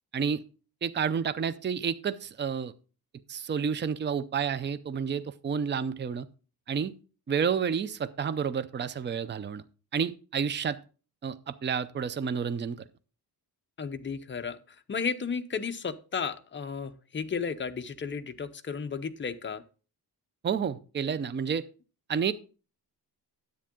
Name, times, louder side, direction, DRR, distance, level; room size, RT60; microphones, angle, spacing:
voice 1, 0.8-2.7 3.3-6.3 6.7-6.9 7.3-9.6 9.9-10.8 11.2-12.8 20.4-21.6 22.1-22.3, right 7 dB, 30° right, 14 dB, 0.5 m, -30 dB
voice 2, 13.8-14.6 14.9-19.6, left 5 dB, 30° left, 8 dB, 0.6 m, -33 dB
10.0 x 8.4 x 3.6 m, 0.36 s
wide cardioid pair, 150°, 40 cm